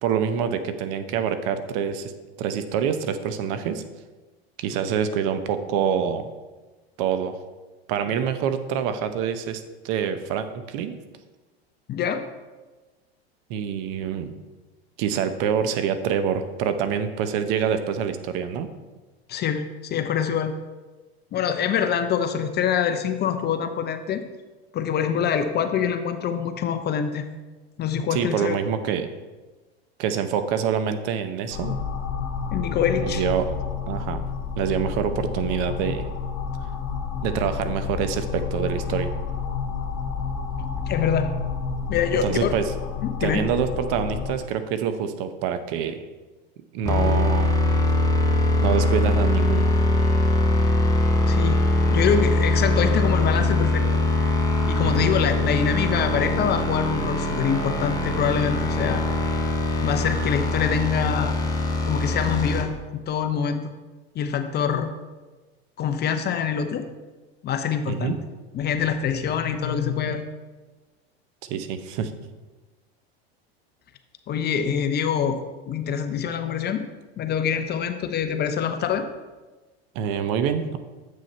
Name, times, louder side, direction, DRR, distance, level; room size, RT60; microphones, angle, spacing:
voice 1, 0.0-2.1 2.4-3.8 4.6-6.3 7.0-7.4 7.9-10.9 13.5-14.3 15.0-18.7 28.1-29.1 30.0-31.8 33.0-33.5 33.9-34.2 34.5-36.0 37.2-39.1 42.2-42.7 43.2-46.0 46.7-47.6 48.6-49.7 54.8-55.1 67.9-68.2 71.5-72.1 79.9-80.8, right 8 dB, 55° right, 10 dB, 0.8 m, -26 dB
voice 2, 11.9-12.2 19.3-20.5 21.3-24.2 24.7-27.3 27.8-28.6 32.5-33.2 40.9-41.3 41.9-42.5 43.0-43.4 51.3-51.6 51.9-53.8 54.7-59.1 59.8-61.4 61.8-63.6 64.1-64.9 65.8-66.9 67.4-68.2 68.5-70.2 74.3-76.9 77.2-79.1, left 7 dB, 30° left, 8 dB, 0.7 m, -25 dB
sound 1, 31.5-44.3, left 6 dB, 55° left, 1.6 m, -30 dB
sound 2, 46.9-62.6, left 2 dB, 10° left, 1.2 m, -22 dB
7.6 x 6.3 x 4.3 m, 1.2 s
hypercardioid pair, 100°, 31 cm